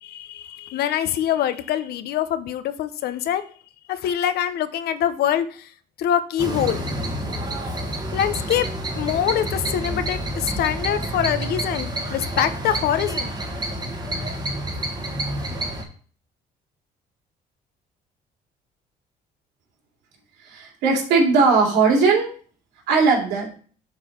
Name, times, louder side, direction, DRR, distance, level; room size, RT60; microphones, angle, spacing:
voice 1, 0.0-3.4 3.9-5.5 6.0-6.8 8.1-8.7 9.0-13.3, left 10 dB, 70° left, 12 dB, 0.8 m, -24 dB
sound 1, 6.4-15.8, right 1 dB, 25° right, 1.6 m, -28 dB
voice 2, 20.5-22.3 22.9-23.5, right 4 dB, 85° right, 0 dB, 2.6 m, -18 dB
7.2 x 3.9 x 6.5 m, 0.43 s
cardioid pair, 110°, 17 cm